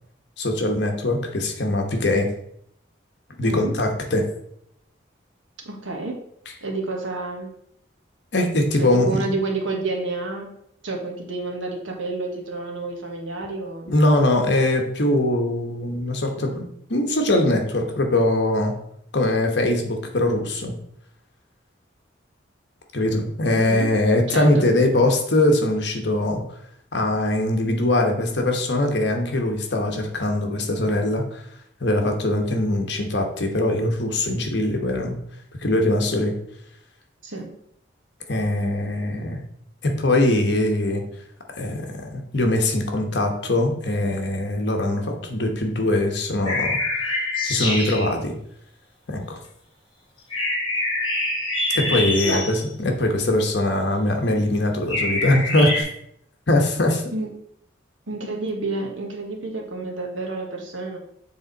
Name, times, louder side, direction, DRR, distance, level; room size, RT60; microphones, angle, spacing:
voice 1, 0.4-2.3 3.4-4.2 8.3-9.3 13.9-18.7 19.1-20.7 22.9-26.4 26.9-31.4 31.8-35.2 35.6-36.3 38.3-39.4 39.8-41.0 41.5-46.8 47.4-48.4 49.1-49.4 51.7-55.9 56.5-57.0, left 1 dB, 60° left, 3 dB, 1.1 m, -22 dB
voice 2, 3.4-3.7 5.6-6.2 6.6-7.5 8.8-10.5 10.8-13.9 23.5-23.9 24.3-24.7 37.2-37.5 52.2-52.5 57.1-57.3 58.1-61.0, right 2 dB, 85° right, 1 dB, 1.5 m, -29 dB
sound 1, 46.4-48.1 50.3-52.7 54.9-55.8, left 2 dB, 25° left, 1.8 m, -25 dB
7.0 x 3.8 x 4.0 m, 0.71 s
head